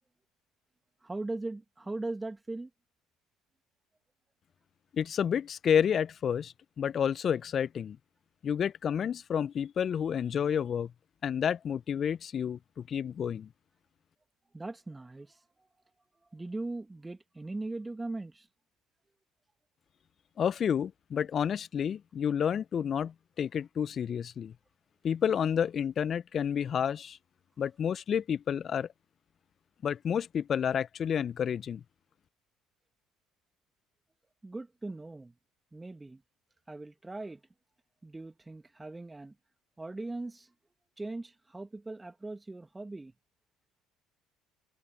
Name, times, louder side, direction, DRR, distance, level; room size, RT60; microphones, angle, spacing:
voice 1, 1.0-2.7 14.5-15.4 16.3-18.5 34.4-35.3 35.7-36.2 36.7-37.4 38.0-39.3 39.8-40.5 41.0-43.1, right 2 dB, 15° right, 2.3 m, -39 dB
voice 2, 4.9-8.0 8.4-10.9 11.2-13.5 20.4-24.5 25.0-27.2 27.6-28.9 29.8-31.8, left 8 dB, 45° left, 0.8 m, -30 dB
hypercardioid pair, 60°, 0 cm